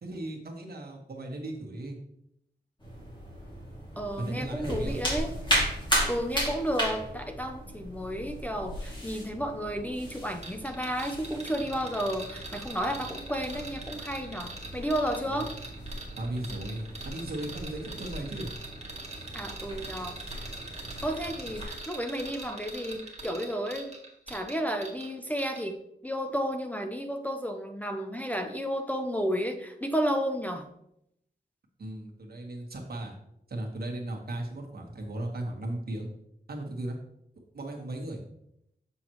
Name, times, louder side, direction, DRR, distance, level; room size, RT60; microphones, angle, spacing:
voice 1, 0.0-2.0 4.2-5.0 15.2-15.4 16.2-18.5 31.8-33.1 33.5-36.1 36.5-37.0 37.5-38.2, right 1 dB, 60° right, 0 dB, 1.5 m, -36 dB
sound 1, 2.8-21.7, equal, 25° left, 2.4 m, -36 dB
voice 2, 4.0-5.4 6.1-15.5 19.3-20.5 21.0-24.0 24.3-25.8 26.0-30.7, equal, 10° left, 3 dB, 0.6 m, -32 dB
sound 2, 10.4-25.1 25.4-25.6, right 2 dB, 40° right, 1.6 m, -42 dB
7.6 x 6.2 x 3.1 m, 0.77 s
wide cardioid pair, 115°, 18 cm